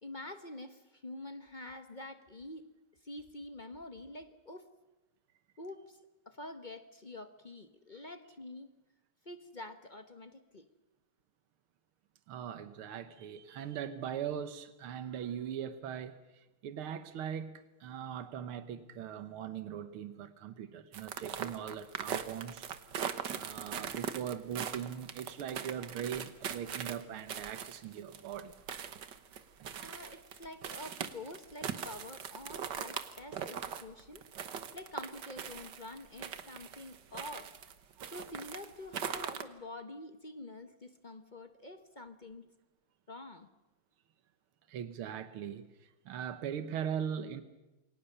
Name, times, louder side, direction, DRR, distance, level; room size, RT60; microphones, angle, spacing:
voice 1, 0.0-2.6 3.0-4.7 5.6-6.0 6.3-8.7 9.2-10.7 29.8-34.2 34.7-37.6 38.1-42.5 43.1-43.5, left 2 dB, 30° left, 0.9 m, -47 dB
voice 2, 12.3-22.7 23.3-28.5 29.6-29.7 38.0-38.1 44.7-47.4, right 9 dB, 85° right, 2.0 m, -40 dB
sound 1, 20.9-37.7 38.0-39.4, right 8 dB, 60° right, 1.8 m, -41 dB
28.0 x 23.5 x 6.8 m
omnidirectional pair, 2.3 m